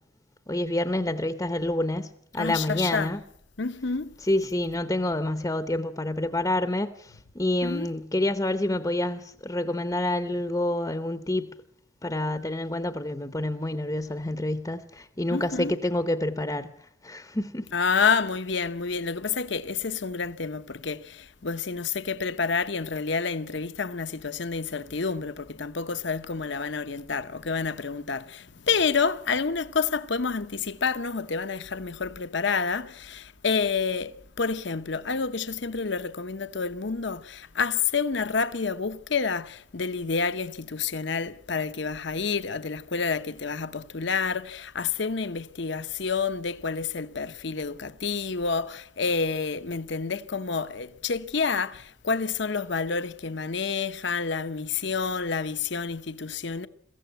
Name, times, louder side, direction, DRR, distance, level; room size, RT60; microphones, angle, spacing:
voice 1, 0.5-3.2 4.2-11.5 12.0-17.7, left 1 dB, 15° left, 0.8 m, -28 dB
voice 2, 2.4-3.1 3.6-4.1 7.6-7.9 15.3-15.7 17.7-56.7, left 5 dB, 60° left, 0.8 m, -29 dB
22.5 x 15.5 x 9.1 m
head